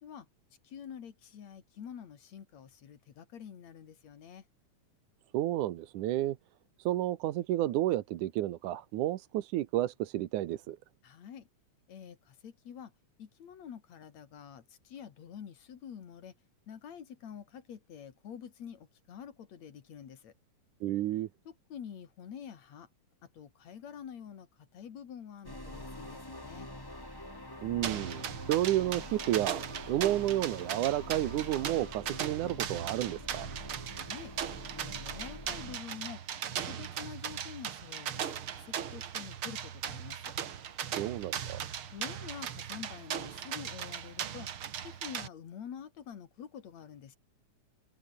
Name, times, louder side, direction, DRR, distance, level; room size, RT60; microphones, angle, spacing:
voice 1, 0.6-4.4 11.0-11.4 11.9-12.9 13.2-16.3 16.7-20.3 21.5-22.9 23.3-24.5 24.7-26.7 33.9-34.3 34.7-36.2 36.7-40.3 41.9-44.5 44.8-47.2, left 8 dB, 60° left, 3.3 m, -47 dB
voice 2, 5.3-6.4 6.9-10.8 20.8-21.3 27.6-29.6 29.9-33.5 41.0-41.6, right 14 dB, 85° right, 2.5 m, -31 dB
sound 1, 25.4-35.8, left 1 dB, 5° left, 3.4 m, -46 dB
sound 2, 25.7-31.7, left 2 dB, 30° left, 7.4 m, -56 dB
sound 3, 27.8-45.3, right 9 dB, 50° right, 2.0 m, -38 dB
omnidirectional pair, 3.5 m